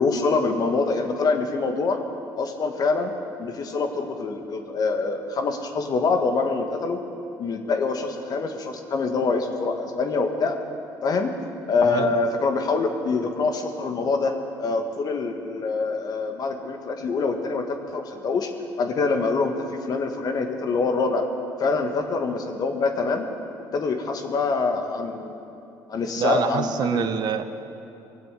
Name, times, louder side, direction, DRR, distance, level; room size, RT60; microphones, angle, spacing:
voice 1, 0.0-2.0 2.4-3.1 3.4-7.0 7.4-10.6 11.0-11.3 11.7-14.3 14.6-18.5 18.8-21.3 21.6-23.3 23.7-25.4 25.9-27.1, left 4 dB, 50° left, 5 dB, 1.7 m, -25 dB
voice 2, 26.2-27.4, right 7 dB, 60° right, 9 dB, 0.9 m, -25 dB
20.5 x 7.7 x 8.2 m, 2.8 s
supercardioid pair, 85°, 8 cm